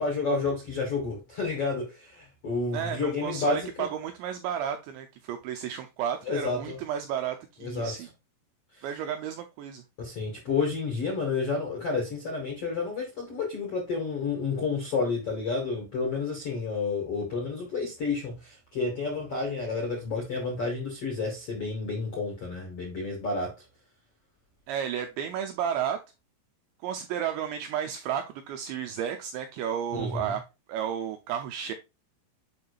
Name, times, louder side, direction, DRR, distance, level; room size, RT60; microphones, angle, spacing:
voice 1, 0.0-3.9 6.3-6.8 7.6-7.9 8.8-8.9 10.0-23.5 29.9-30.4, left 4 dB, 55° left, 1.6 m, -30 dB
voice 2, 2.7-8.1 8.8-9.8 24.7-26.0 26.8-30.4 30.7-31.7, right 9 dB, 80° right, 2.6 m, -32 dB
7.7 x 5.6 x 2.4 m
omnidirectional pair, 5.9 m